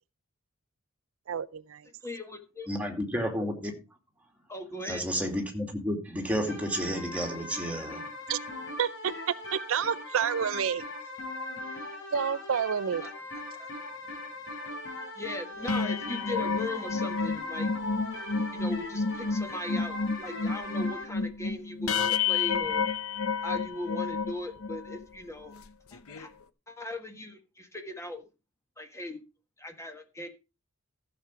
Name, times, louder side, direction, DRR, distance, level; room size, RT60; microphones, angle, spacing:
voice 1, 1.3-1.9 8.3-8.4 8.8-9.1 9.5-10.8 12.1-13.0, right 7 dB, 70° right, 0.5 m, -29 dB
voice 2, 2.0-2.7 4.5-5.0 13.0-13.1 13.6-13.7 15.1-17.7 18.5-22.9 23.4-25.5 25.9-26.3 26.7-28.2 28.8-29.2 29.6-30.3, left 1 dB, 15° left, 1.5 m, -39 dB
voice 3, 2.7-3.7 4.8-8.0, equal, 5° right, 2.6 m, -31 dB
sound 1, 6.5-21.1, left 2 dB, 60° left, 4.9 m, -39 dB
sound 2, 15.6-25.0 25.5-25.7 25.9-26.3, left 5 dB, 90° left, 0.9 m, -30 dB
14.5 x 7.1 x 4.7 m
head